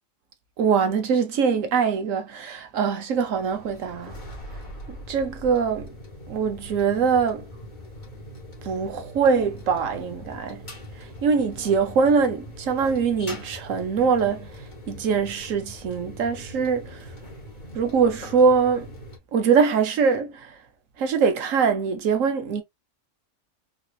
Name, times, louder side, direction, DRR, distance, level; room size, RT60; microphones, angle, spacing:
voice 1, 0.6-4.1 5.1-5.9 6.3-7.5 8.6-10.7 11.0-17.1 17.7-18.9 19.3-20.6 21.0-22.6, right 5 dB, 75° right, 1.2 m, -23 dB
sound 1, 3.1-19.2, equal, 40° left, 1.3 m, -42 dB
3.9 x 2.9 x 2.3 m
omnidirectional pair, 1.4 m